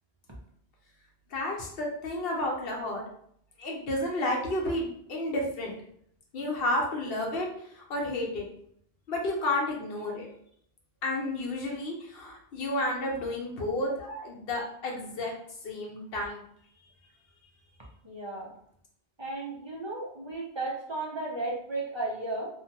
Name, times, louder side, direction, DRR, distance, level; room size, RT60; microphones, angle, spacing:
voice 1, 1.3-3.0 3.6-5.7 6.3-8.5 9.1-10.3 11.0-15.3 15.6-16.4, left 1 dB, 70° left, -1 dB, 0.9 m, -31 dB
voice 2, 18.0-18.5 19.2-22.5, right 2 dB, 35° right, -4 dB, 0.5 m, -34 dB
2.7 x 2.2 x 2.8 m, 0.67 s
omnidirectional pair, 1.0 m